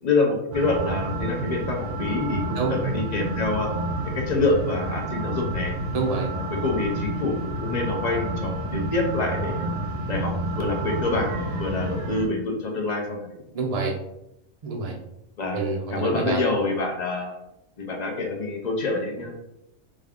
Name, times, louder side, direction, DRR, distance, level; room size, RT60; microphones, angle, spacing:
voice 1, 0.0-3.7 4.1-5.7 6.3-9.7 10.1-13.3 15.4-15.6 15.9-17.4 17.8-19.3, left 3 dB, 45° left, 1 dB, 0.5 m, -26 dB
sound 1, 0.5-12.3, right 2 dB, 60° right, 1.0 m, -30 dB
voice 2, 5.9-6.3 13.5-13.9 14.6-15.0 15.5-16.4, right 3 dB, 40° right, 0 dB, 0.6 m, -26 dB
3.6 x 2.3 x 3.5 m, 0.83 s
omnidirectional pair, 1.4 m